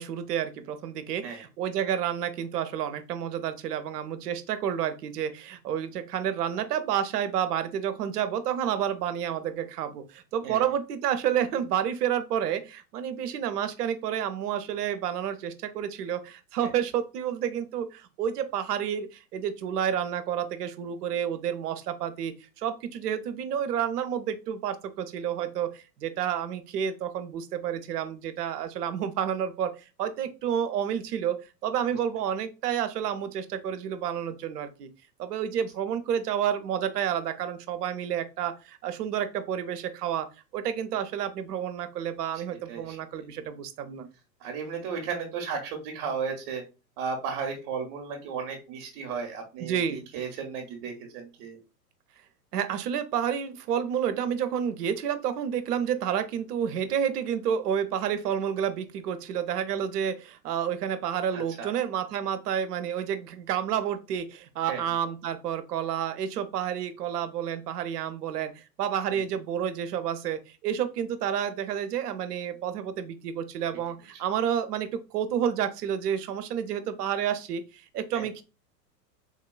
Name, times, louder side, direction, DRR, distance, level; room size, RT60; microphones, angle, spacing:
voice 1, 0.0-34.9 35.2-40.3 40.5-44.1 49.6-50.0 52.5-78.4, right 9 dB, 70° right, 11 dB, 0.6 m, -30 dB
voice 2, 44.4-46.6 47.0-51.6 61.3-61.7 64.7-64.8 69.1-69.2 78.1-78.3, right 5 dB, 40° right, 3 dB, 0.8 m, -34 dB
3.6 x 2.2 x 2.2 m, 0.31 s
hypercardioid pair, 105°, 49 cm